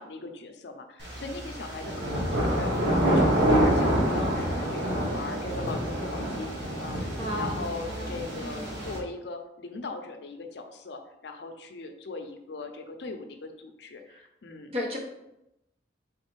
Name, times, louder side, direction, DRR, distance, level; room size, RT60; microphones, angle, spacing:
voice 1, 0.0-6.5 6.8-7.1 7.4-14.7, left 3 dB, 70° left, 6 dB, 0.5 m, -39 dB
sound 1, 1.0-9.0, right 1 dB, 80° right, 1.4 m, -27 dB
voice 2, 7.2-8.9 14.1-14.2 14.7-15.0, left 1 dB, 30° right, 0 dB, 0.8 m, -35 dB
3.6 x 3.2 x 4.6 m, 0.89 s
head